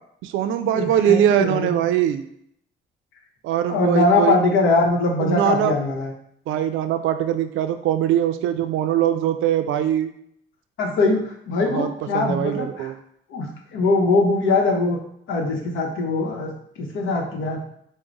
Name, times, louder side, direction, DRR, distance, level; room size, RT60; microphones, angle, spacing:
voice 1, 0.2-2.3 3.4-4.4 5.2-5.7 6.5-10.1 11.7-11.9 12.1-12.9, right 10 dB, 80° right, 9 dB, 0.4 m, -21 dB
voice 2, 0.7-1.8 3.7-6.1 10.8-12.9 13.3-15.0 15.3-17.6, left 3 dB, 80° left, 1 dB, 0.9 m, -22 dB
4.7 x 2.1 x 3.9 m, 0.70 s
cardioid pair, 90°, 20 cm